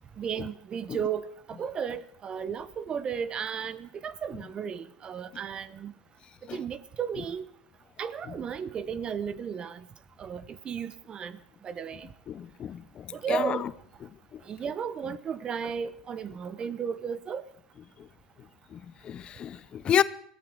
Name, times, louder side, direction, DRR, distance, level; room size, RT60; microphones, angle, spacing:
voice 1, 0.2-5.9 6.5-7.4 8.0-9.9 10.2-11.4 11.6-12.1 13.1-13.6 14.4-17.4, right 7 dB, 35° right, 1.1 m, -34 dB
voice 2, 12.3-13.6 18.7-20.0, left 10 dB, 35° left, 0.7 m, -30 dB
21.5 x 15.0 x 3.8 m
hypercardioid pair, 95°, 3 cm